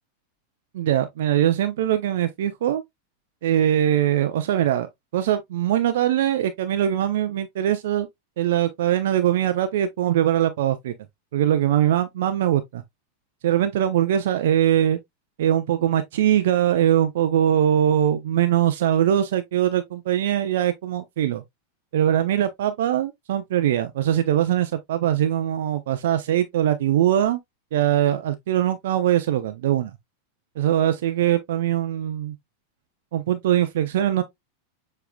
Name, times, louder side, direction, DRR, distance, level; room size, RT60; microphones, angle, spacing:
voice 1, 0.7-2.8 3.4-8.1 8.4-10.9 11.3-12.8 13.4-15.0 15.4-21.4 21.9-27.4 27.7-29.9 30.6-32.3 33.1-34.2, right 11 dB, 55° right, 0.5 m, -22 dB
6.9 x 3.3 x 2.2 m
figure-of-eight pair, 90°, 0 cm